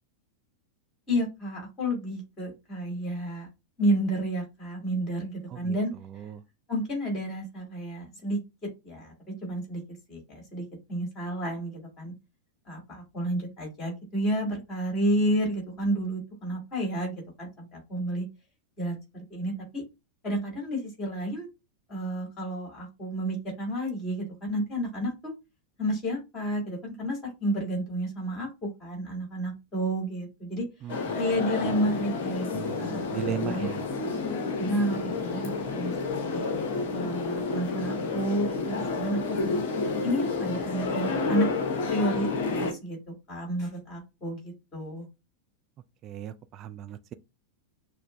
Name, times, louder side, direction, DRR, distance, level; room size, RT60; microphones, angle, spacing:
voice 1, 1.1-3.5 3.8-5.9 6.7-9.1 9.4-9.8 10.1-12.1 12.7-18.3 18.8-19.8 20.2-21.5 21.9-25.3 25.8-30.6 31.2-32.5 32.8-33.1 33.4-33.7 34.6-35.9 36.3-36.4 36.9-39.4 40.0-41.5 41.9-45.1, equal, 30° left, 2.5 m, -31 dB
voice 2, 5.5-6.4 30.8-31.2 31.7-31.9 32.5-33.9 46.0-47.1, right 10 dB, 35° right, 0.4 m, -37 dB
sound 1, 30.9-42.7, left 3 dB, 50° left, 0.8 m, -30 dB
6.3 x 2.1 x 2.6 m
figure-of-eight pair, 90°, 0 cm